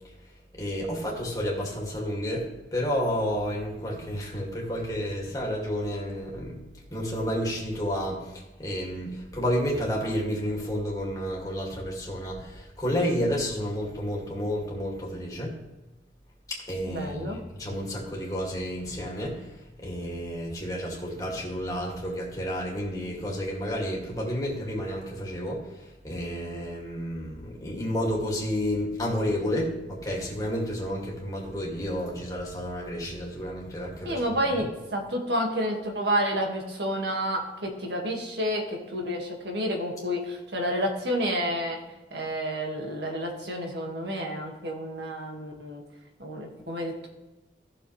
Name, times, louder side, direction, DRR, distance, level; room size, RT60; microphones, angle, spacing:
voice 1, 0.5-15.6 16.5-34.4, equal, 20° left, -3 dB, 2.4 m, -31 dB
voice 2, 16.9-17.4 34.0-41.8 42.1-45.8 46.2-47.1, equal, 75° right, 1 dB, 2.0 m, -30 dB
15.0 x 6.8 x 3.3 m, 1.1 s
head